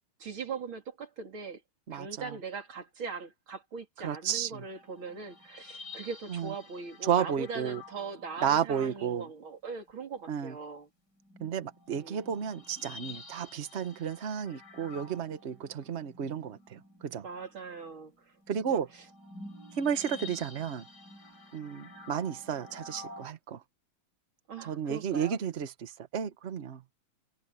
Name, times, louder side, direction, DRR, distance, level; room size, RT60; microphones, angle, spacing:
voice 1, 0.2-1.6 1.9-10.9 11.9-12.2 17.2-18.3 18.7-18.8 24.5-25.4, right 5 dB, 85° right, 4.0 m, -41 dB
voice 2, 1.9-2.4 4.0-4.6 6.3-6.5 7.0-7.8 8.4-9.3 10.3-10.6 11.4-17.2 18.5-18.9 19.7-20.9 21.5-23.6 24.6-26.8, right 8 dB, 40° right, 1.2 m, -32 dB
sound 1, 4.4-8.9 9.9-10.0 11.2-23.3, left 3 dB, 55° left, 6.8 m, -50 dB
omnidirectional pair, 2.2 m